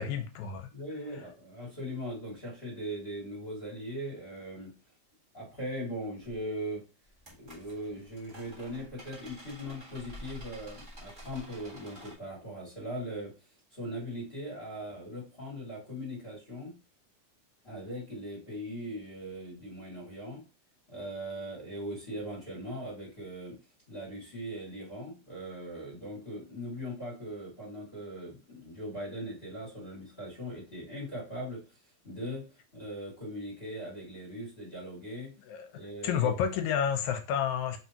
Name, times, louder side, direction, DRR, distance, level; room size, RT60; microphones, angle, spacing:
voice 1, 0.0-0.7 35.5-35.7 36.0-37.8, left 8 dB, 80° left, 2.0 m, -30 dB
voice 2, 0.7-4.7 5.3-6.8 7.4-13.3 13.7-16.7 17.6-20.4 20.9-23.6 23.9-31.6 32.0-32.4 32.7-35.3 35.7-36.3, equal, 20° left, 2.0 m, -40 dB
sound 1, 6.2-6.4 7.1-12.1, equal, 25° right, 1.1 m, -49 dB
4.6 x 3.5 x 2.8 m
omnidirectional pair, 3.5 m